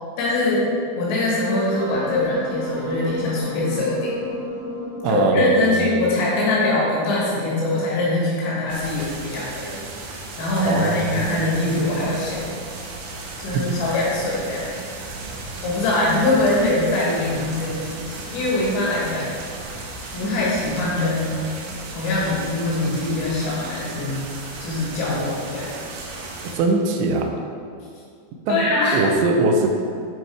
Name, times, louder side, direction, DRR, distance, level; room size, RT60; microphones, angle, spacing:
voice 1, 0.2-0.7 1.0-4.2 5.1-9.8 10.4-12.4 13.4-14.7 15.0-15.1 15.6-19.3 20.1-21.5 21.9-24.2 24.6-25.7 28.5-29.2, left 2 dB, 75° left, -5 dB, 4.3 m, -23 dB
Wind instrument woodwind instrument, 1.4-6.5, left 2 dB, 60° left, 3.0 m, -31 dB
voice 2, 5.0-5.8 10.7-11.3 13.5-13.6 26.4-27.3 28.5-29.7, right 3 dB, 90° right, 2 dB, 2.6 m, -21 dB
sound 1, 8.7-26.6, right 3 dB, 75° right, 3.6 m, -35 dB
8.9 x 6.6 x 4.6 m, 2.3 s
omnidirectional pair, 6.0 m